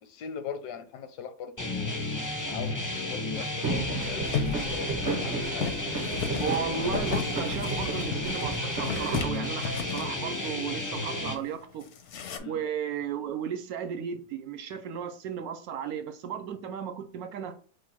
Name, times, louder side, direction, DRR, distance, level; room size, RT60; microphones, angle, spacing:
voice 1, 0.0-6.3 12.4-12.7, left 7 dB, 80° left, 1.2 m, -41 dB
sound 1, 1.6-11.3, left 2 dB, 25° left, 0.4 m, -33 dB
sound 2, 3.6-9.3, right 3 dB, 45° right, 0.8 m, -34 dB
sound 3, 4.2-10.5 10.8-10.9 11.1-11.5 11.8-12.4, left 6 dB, 65° left, 0.7 m, -35 dB
voice 2, 6.4-11.9 12.5-17.6, right 7 dB, 70° right, 1.0 m, -34 dB
4.9 x 2.2 x 4.4 m
omnidirectional pair, 1.7 m